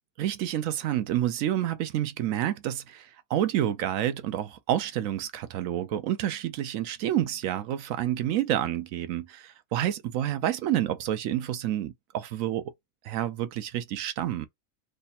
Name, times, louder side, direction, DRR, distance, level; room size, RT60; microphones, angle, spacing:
voice 1, 0.2-12.7 13.0-14.5, right 12 dB, 70° right, 0.9 m, -29 dB
3.3 x 2.1 x 4.1 m
omnidirectional pair, 1.5 m